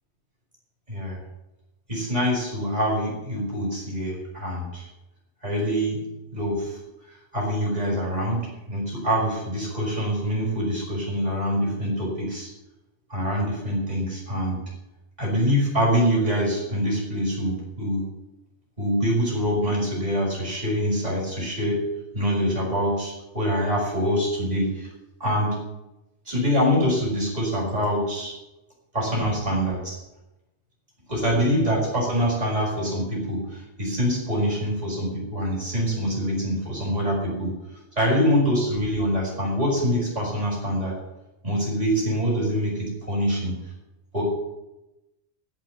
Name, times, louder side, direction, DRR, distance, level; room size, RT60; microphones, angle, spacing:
voice 1, 0.9-1.2 1.9-4.9 5.4-6.1 6.3-6.8 7.3-12.5 13.1-14.6 15.2-18.0 18.8-21.9 22.1-24.9 25.2-25.6 26.3-28.4 28.9-29.9 31.1-37.6 38.0-40.9 41.4-43.6 44.1-44.2, equal, 35° right, -4 dB, 5.9 m, -25 dB
15.0 x 6.1 x 9.6 m, 0.96 s
omnidirectional pair, 1.2 m